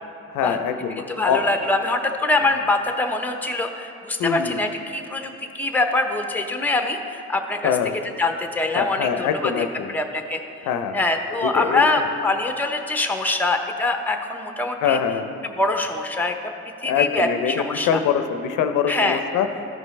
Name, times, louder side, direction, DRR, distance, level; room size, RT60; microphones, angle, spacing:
voice 1, 0.3-1.5 4.2-4.7 7.6-7.9 8.7-10.0 10.6-11.0 11.4-12.0 14.8-15.3 16.8-19.5, left 8 dB, 90° left, 8 dB, 0.5 m, -24 dB
voice 2, 1.0-7.7 8.2-10.4 10.9-15.0 15.6-16.4 16.8-18.0 18.9-19.2, left 2 dB, 5° left, 5 dB, 0.7 m, -24 dB
13.5 x 5.3 x 3.2 m, 2.6 s
cardioid pair, 90°, 30 cm